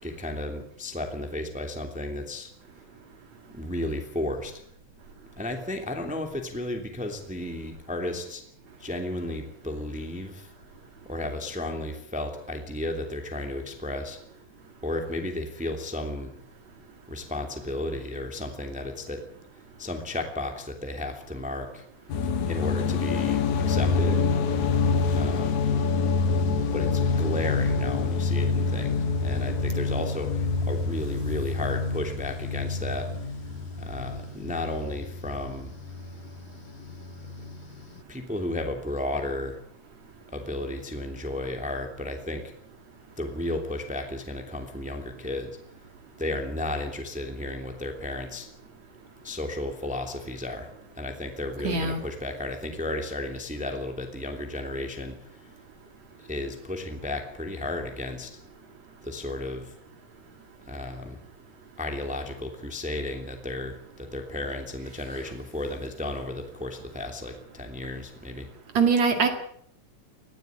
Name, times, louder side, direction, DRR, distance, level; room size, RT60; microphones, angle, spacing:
voice 1, 0.0-2.5 3.5-4.5 5.4-8.4 8.8-10.5 11.1-14.2 14.8-16.4 17.1-19.2 19.8-21.8 22.5-24.2 25.1-25.6 26.4-33.3 33.8-35.7 38.1-39.6 40.3-42.5 43.2-45.6 46.2-48.5 49.2-50.7 50.9-55.3 56.3-58.3 59.0-59.7 60.7-61.2 61.8-68.5, left 1 dB, ahead, 4 dB, 2.4 m, -33 dB
sound 1, 22.1-38.0, left 4 dB, 65° left, 2.8 m, -27 dB
voice 2, 51.6-52.0 68.7-69.3, right 5 dB, 55° right, 6 dB, 3.3 m, -22 dB
21.0 x 15.0 x 9.5 m, 0.69 s
omnidirectional pair, 3.9 m